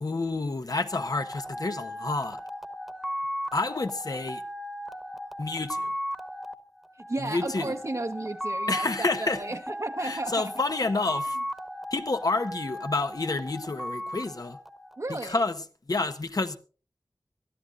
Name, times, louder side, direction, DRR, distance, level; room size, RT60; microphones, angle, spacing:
voice 1, 0.0-2.4 3.5-4.4 5.4-5.9 7.2-7.8 8.7-9.4 10.0-11.4 11.9-14.6 15.1-15.6 15.9-16.6, left 3 dB, 65° left, 1.1 m, -29 dB
sound 1, 0.8-15.3, equal, ahead, 1.3 m, -37 dB
voice 2, 7.0-10.5 15.0-15.4, right 2 dB, 50° right, 1.0 m, -34 dB
23.0 x 13.0 x 2.6 m
wide cardioid pair, 50°, 7 cm